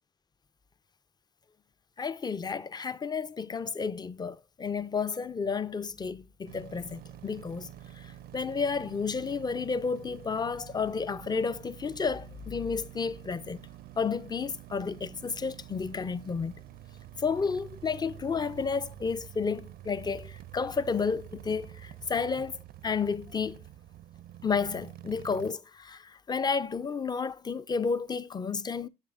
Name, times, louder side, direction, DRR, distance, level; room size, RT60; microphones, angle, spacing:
voice 1, 2.0-13.6 14.0-16.6 17.2-22.6 22.8-23.6 24.4-28.9, left 5 dB, 25° left, 0.5 m, -31 dB
sound 1, 6.5-25.5, right 12 dB, 65° right, 0.4 m, -48 dB
7.3 x 7.1 x 2.4 m
hypercardioid pair, 50°, 17 cm